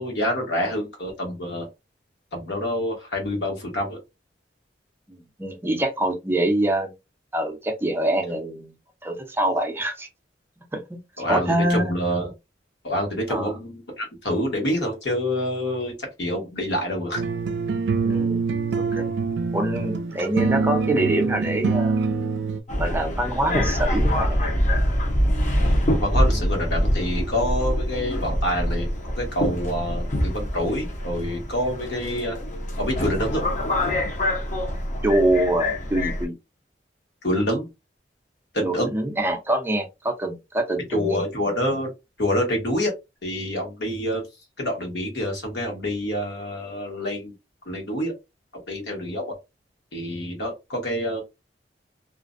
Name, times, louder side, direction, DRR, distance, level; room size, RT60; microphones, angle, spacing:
voice 1, 0.0-1.7 2.3-4.0 11.2-12.3 12.8-15.9 16.2-17.2 26.0-28.9 29.2-32.4 32.8-33.4 37.2-37.7 38.5-38.9 40.9-41.9 42.2-42.9 43.2-44.2 44.6-47.3 47.7-48.1 48.7-49.3 49.9-51.2, equal, 70° left, 1.1 m, -27 dB
voice 2, 5.1-6.9 7.3-8.7 9.0-10.1 10.7-11.0 11.3-11.9 13.3-13.6 18.0-18.4 18.8-19.1 19.5-22.0 22.8-24.5 35.0-36.4 38.6-41.3, right 1 dB, 15° right, 0.4 m, -25 dB
sound 1, 17.2-22.6, right 4 dB, 75° right, 0.4 m, -25 dB
Subway metro underground, 22.7-36.3, equal, 40° left, 0.6 m, -25 dB
2.4 x 2.1 x 2.4 m
head